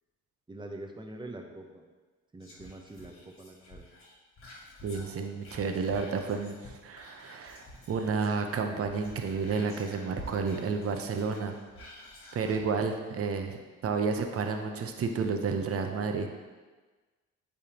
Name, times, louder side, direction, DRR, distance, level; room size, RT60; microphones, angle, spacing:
voice 1, 0.5-1.8 2.3-3.8, right 2 dB, 15° right, 3 dB, 0.7 m, -44 dB
Whispering, 2.4-8.4 8.7-12.7 13.1-13.2, left 1 dB, 45° left, 1.6 m, -50 dB
voice 2, 4.8-11.6 12.3-16.3, right 5 dB, 50° right, 5 dB, 0.7 m, -31 dB
9.1 x 3.5 x 2.9 m, 1.3 s
cardioid pair, 90°, 30 cm